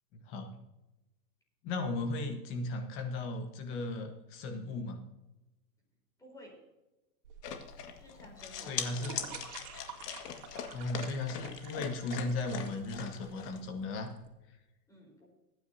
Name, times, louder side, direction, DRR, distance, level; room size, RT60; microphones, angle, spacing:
voice 1, 0.1-0.5 1.6-5.0 8.6-9.3 10.7-14.1, left 2 dB, 25° left, 5 dB, 1.2 m, -36 dB
voice 2, 6.2-6.6 8.0-9.3 14.9-15.3, equal, 5° left, -1 dB, 4.2 m, -53 dB
sound 1, 7.2-14.3, right 7 dB, 65° right, 3.0 m, -50 dB
sound 2, 7.4-13.6, left 8 dB, 70° left, 1.9 m, -41 dB
20.5 x 9.6 x 2.8 m, 0.99 s
hypercardioid pair, 150°, 50 cm